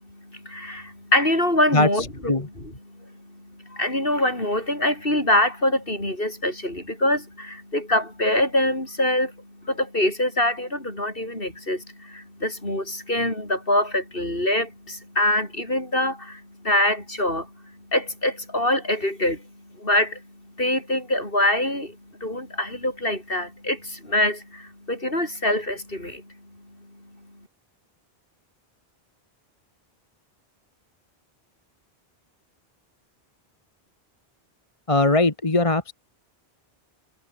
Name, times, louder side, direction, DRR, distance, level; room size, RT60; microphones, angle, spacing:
voice 1, 0.0-26.6, left 1 dB, 60° left, 8.2 m, -25 dB
voice 2, 1.7-2.5 34.9-35.9, left 2 dB, 30° left, 1.6 m, -21 dB
omnidirectional pair, 1.0 m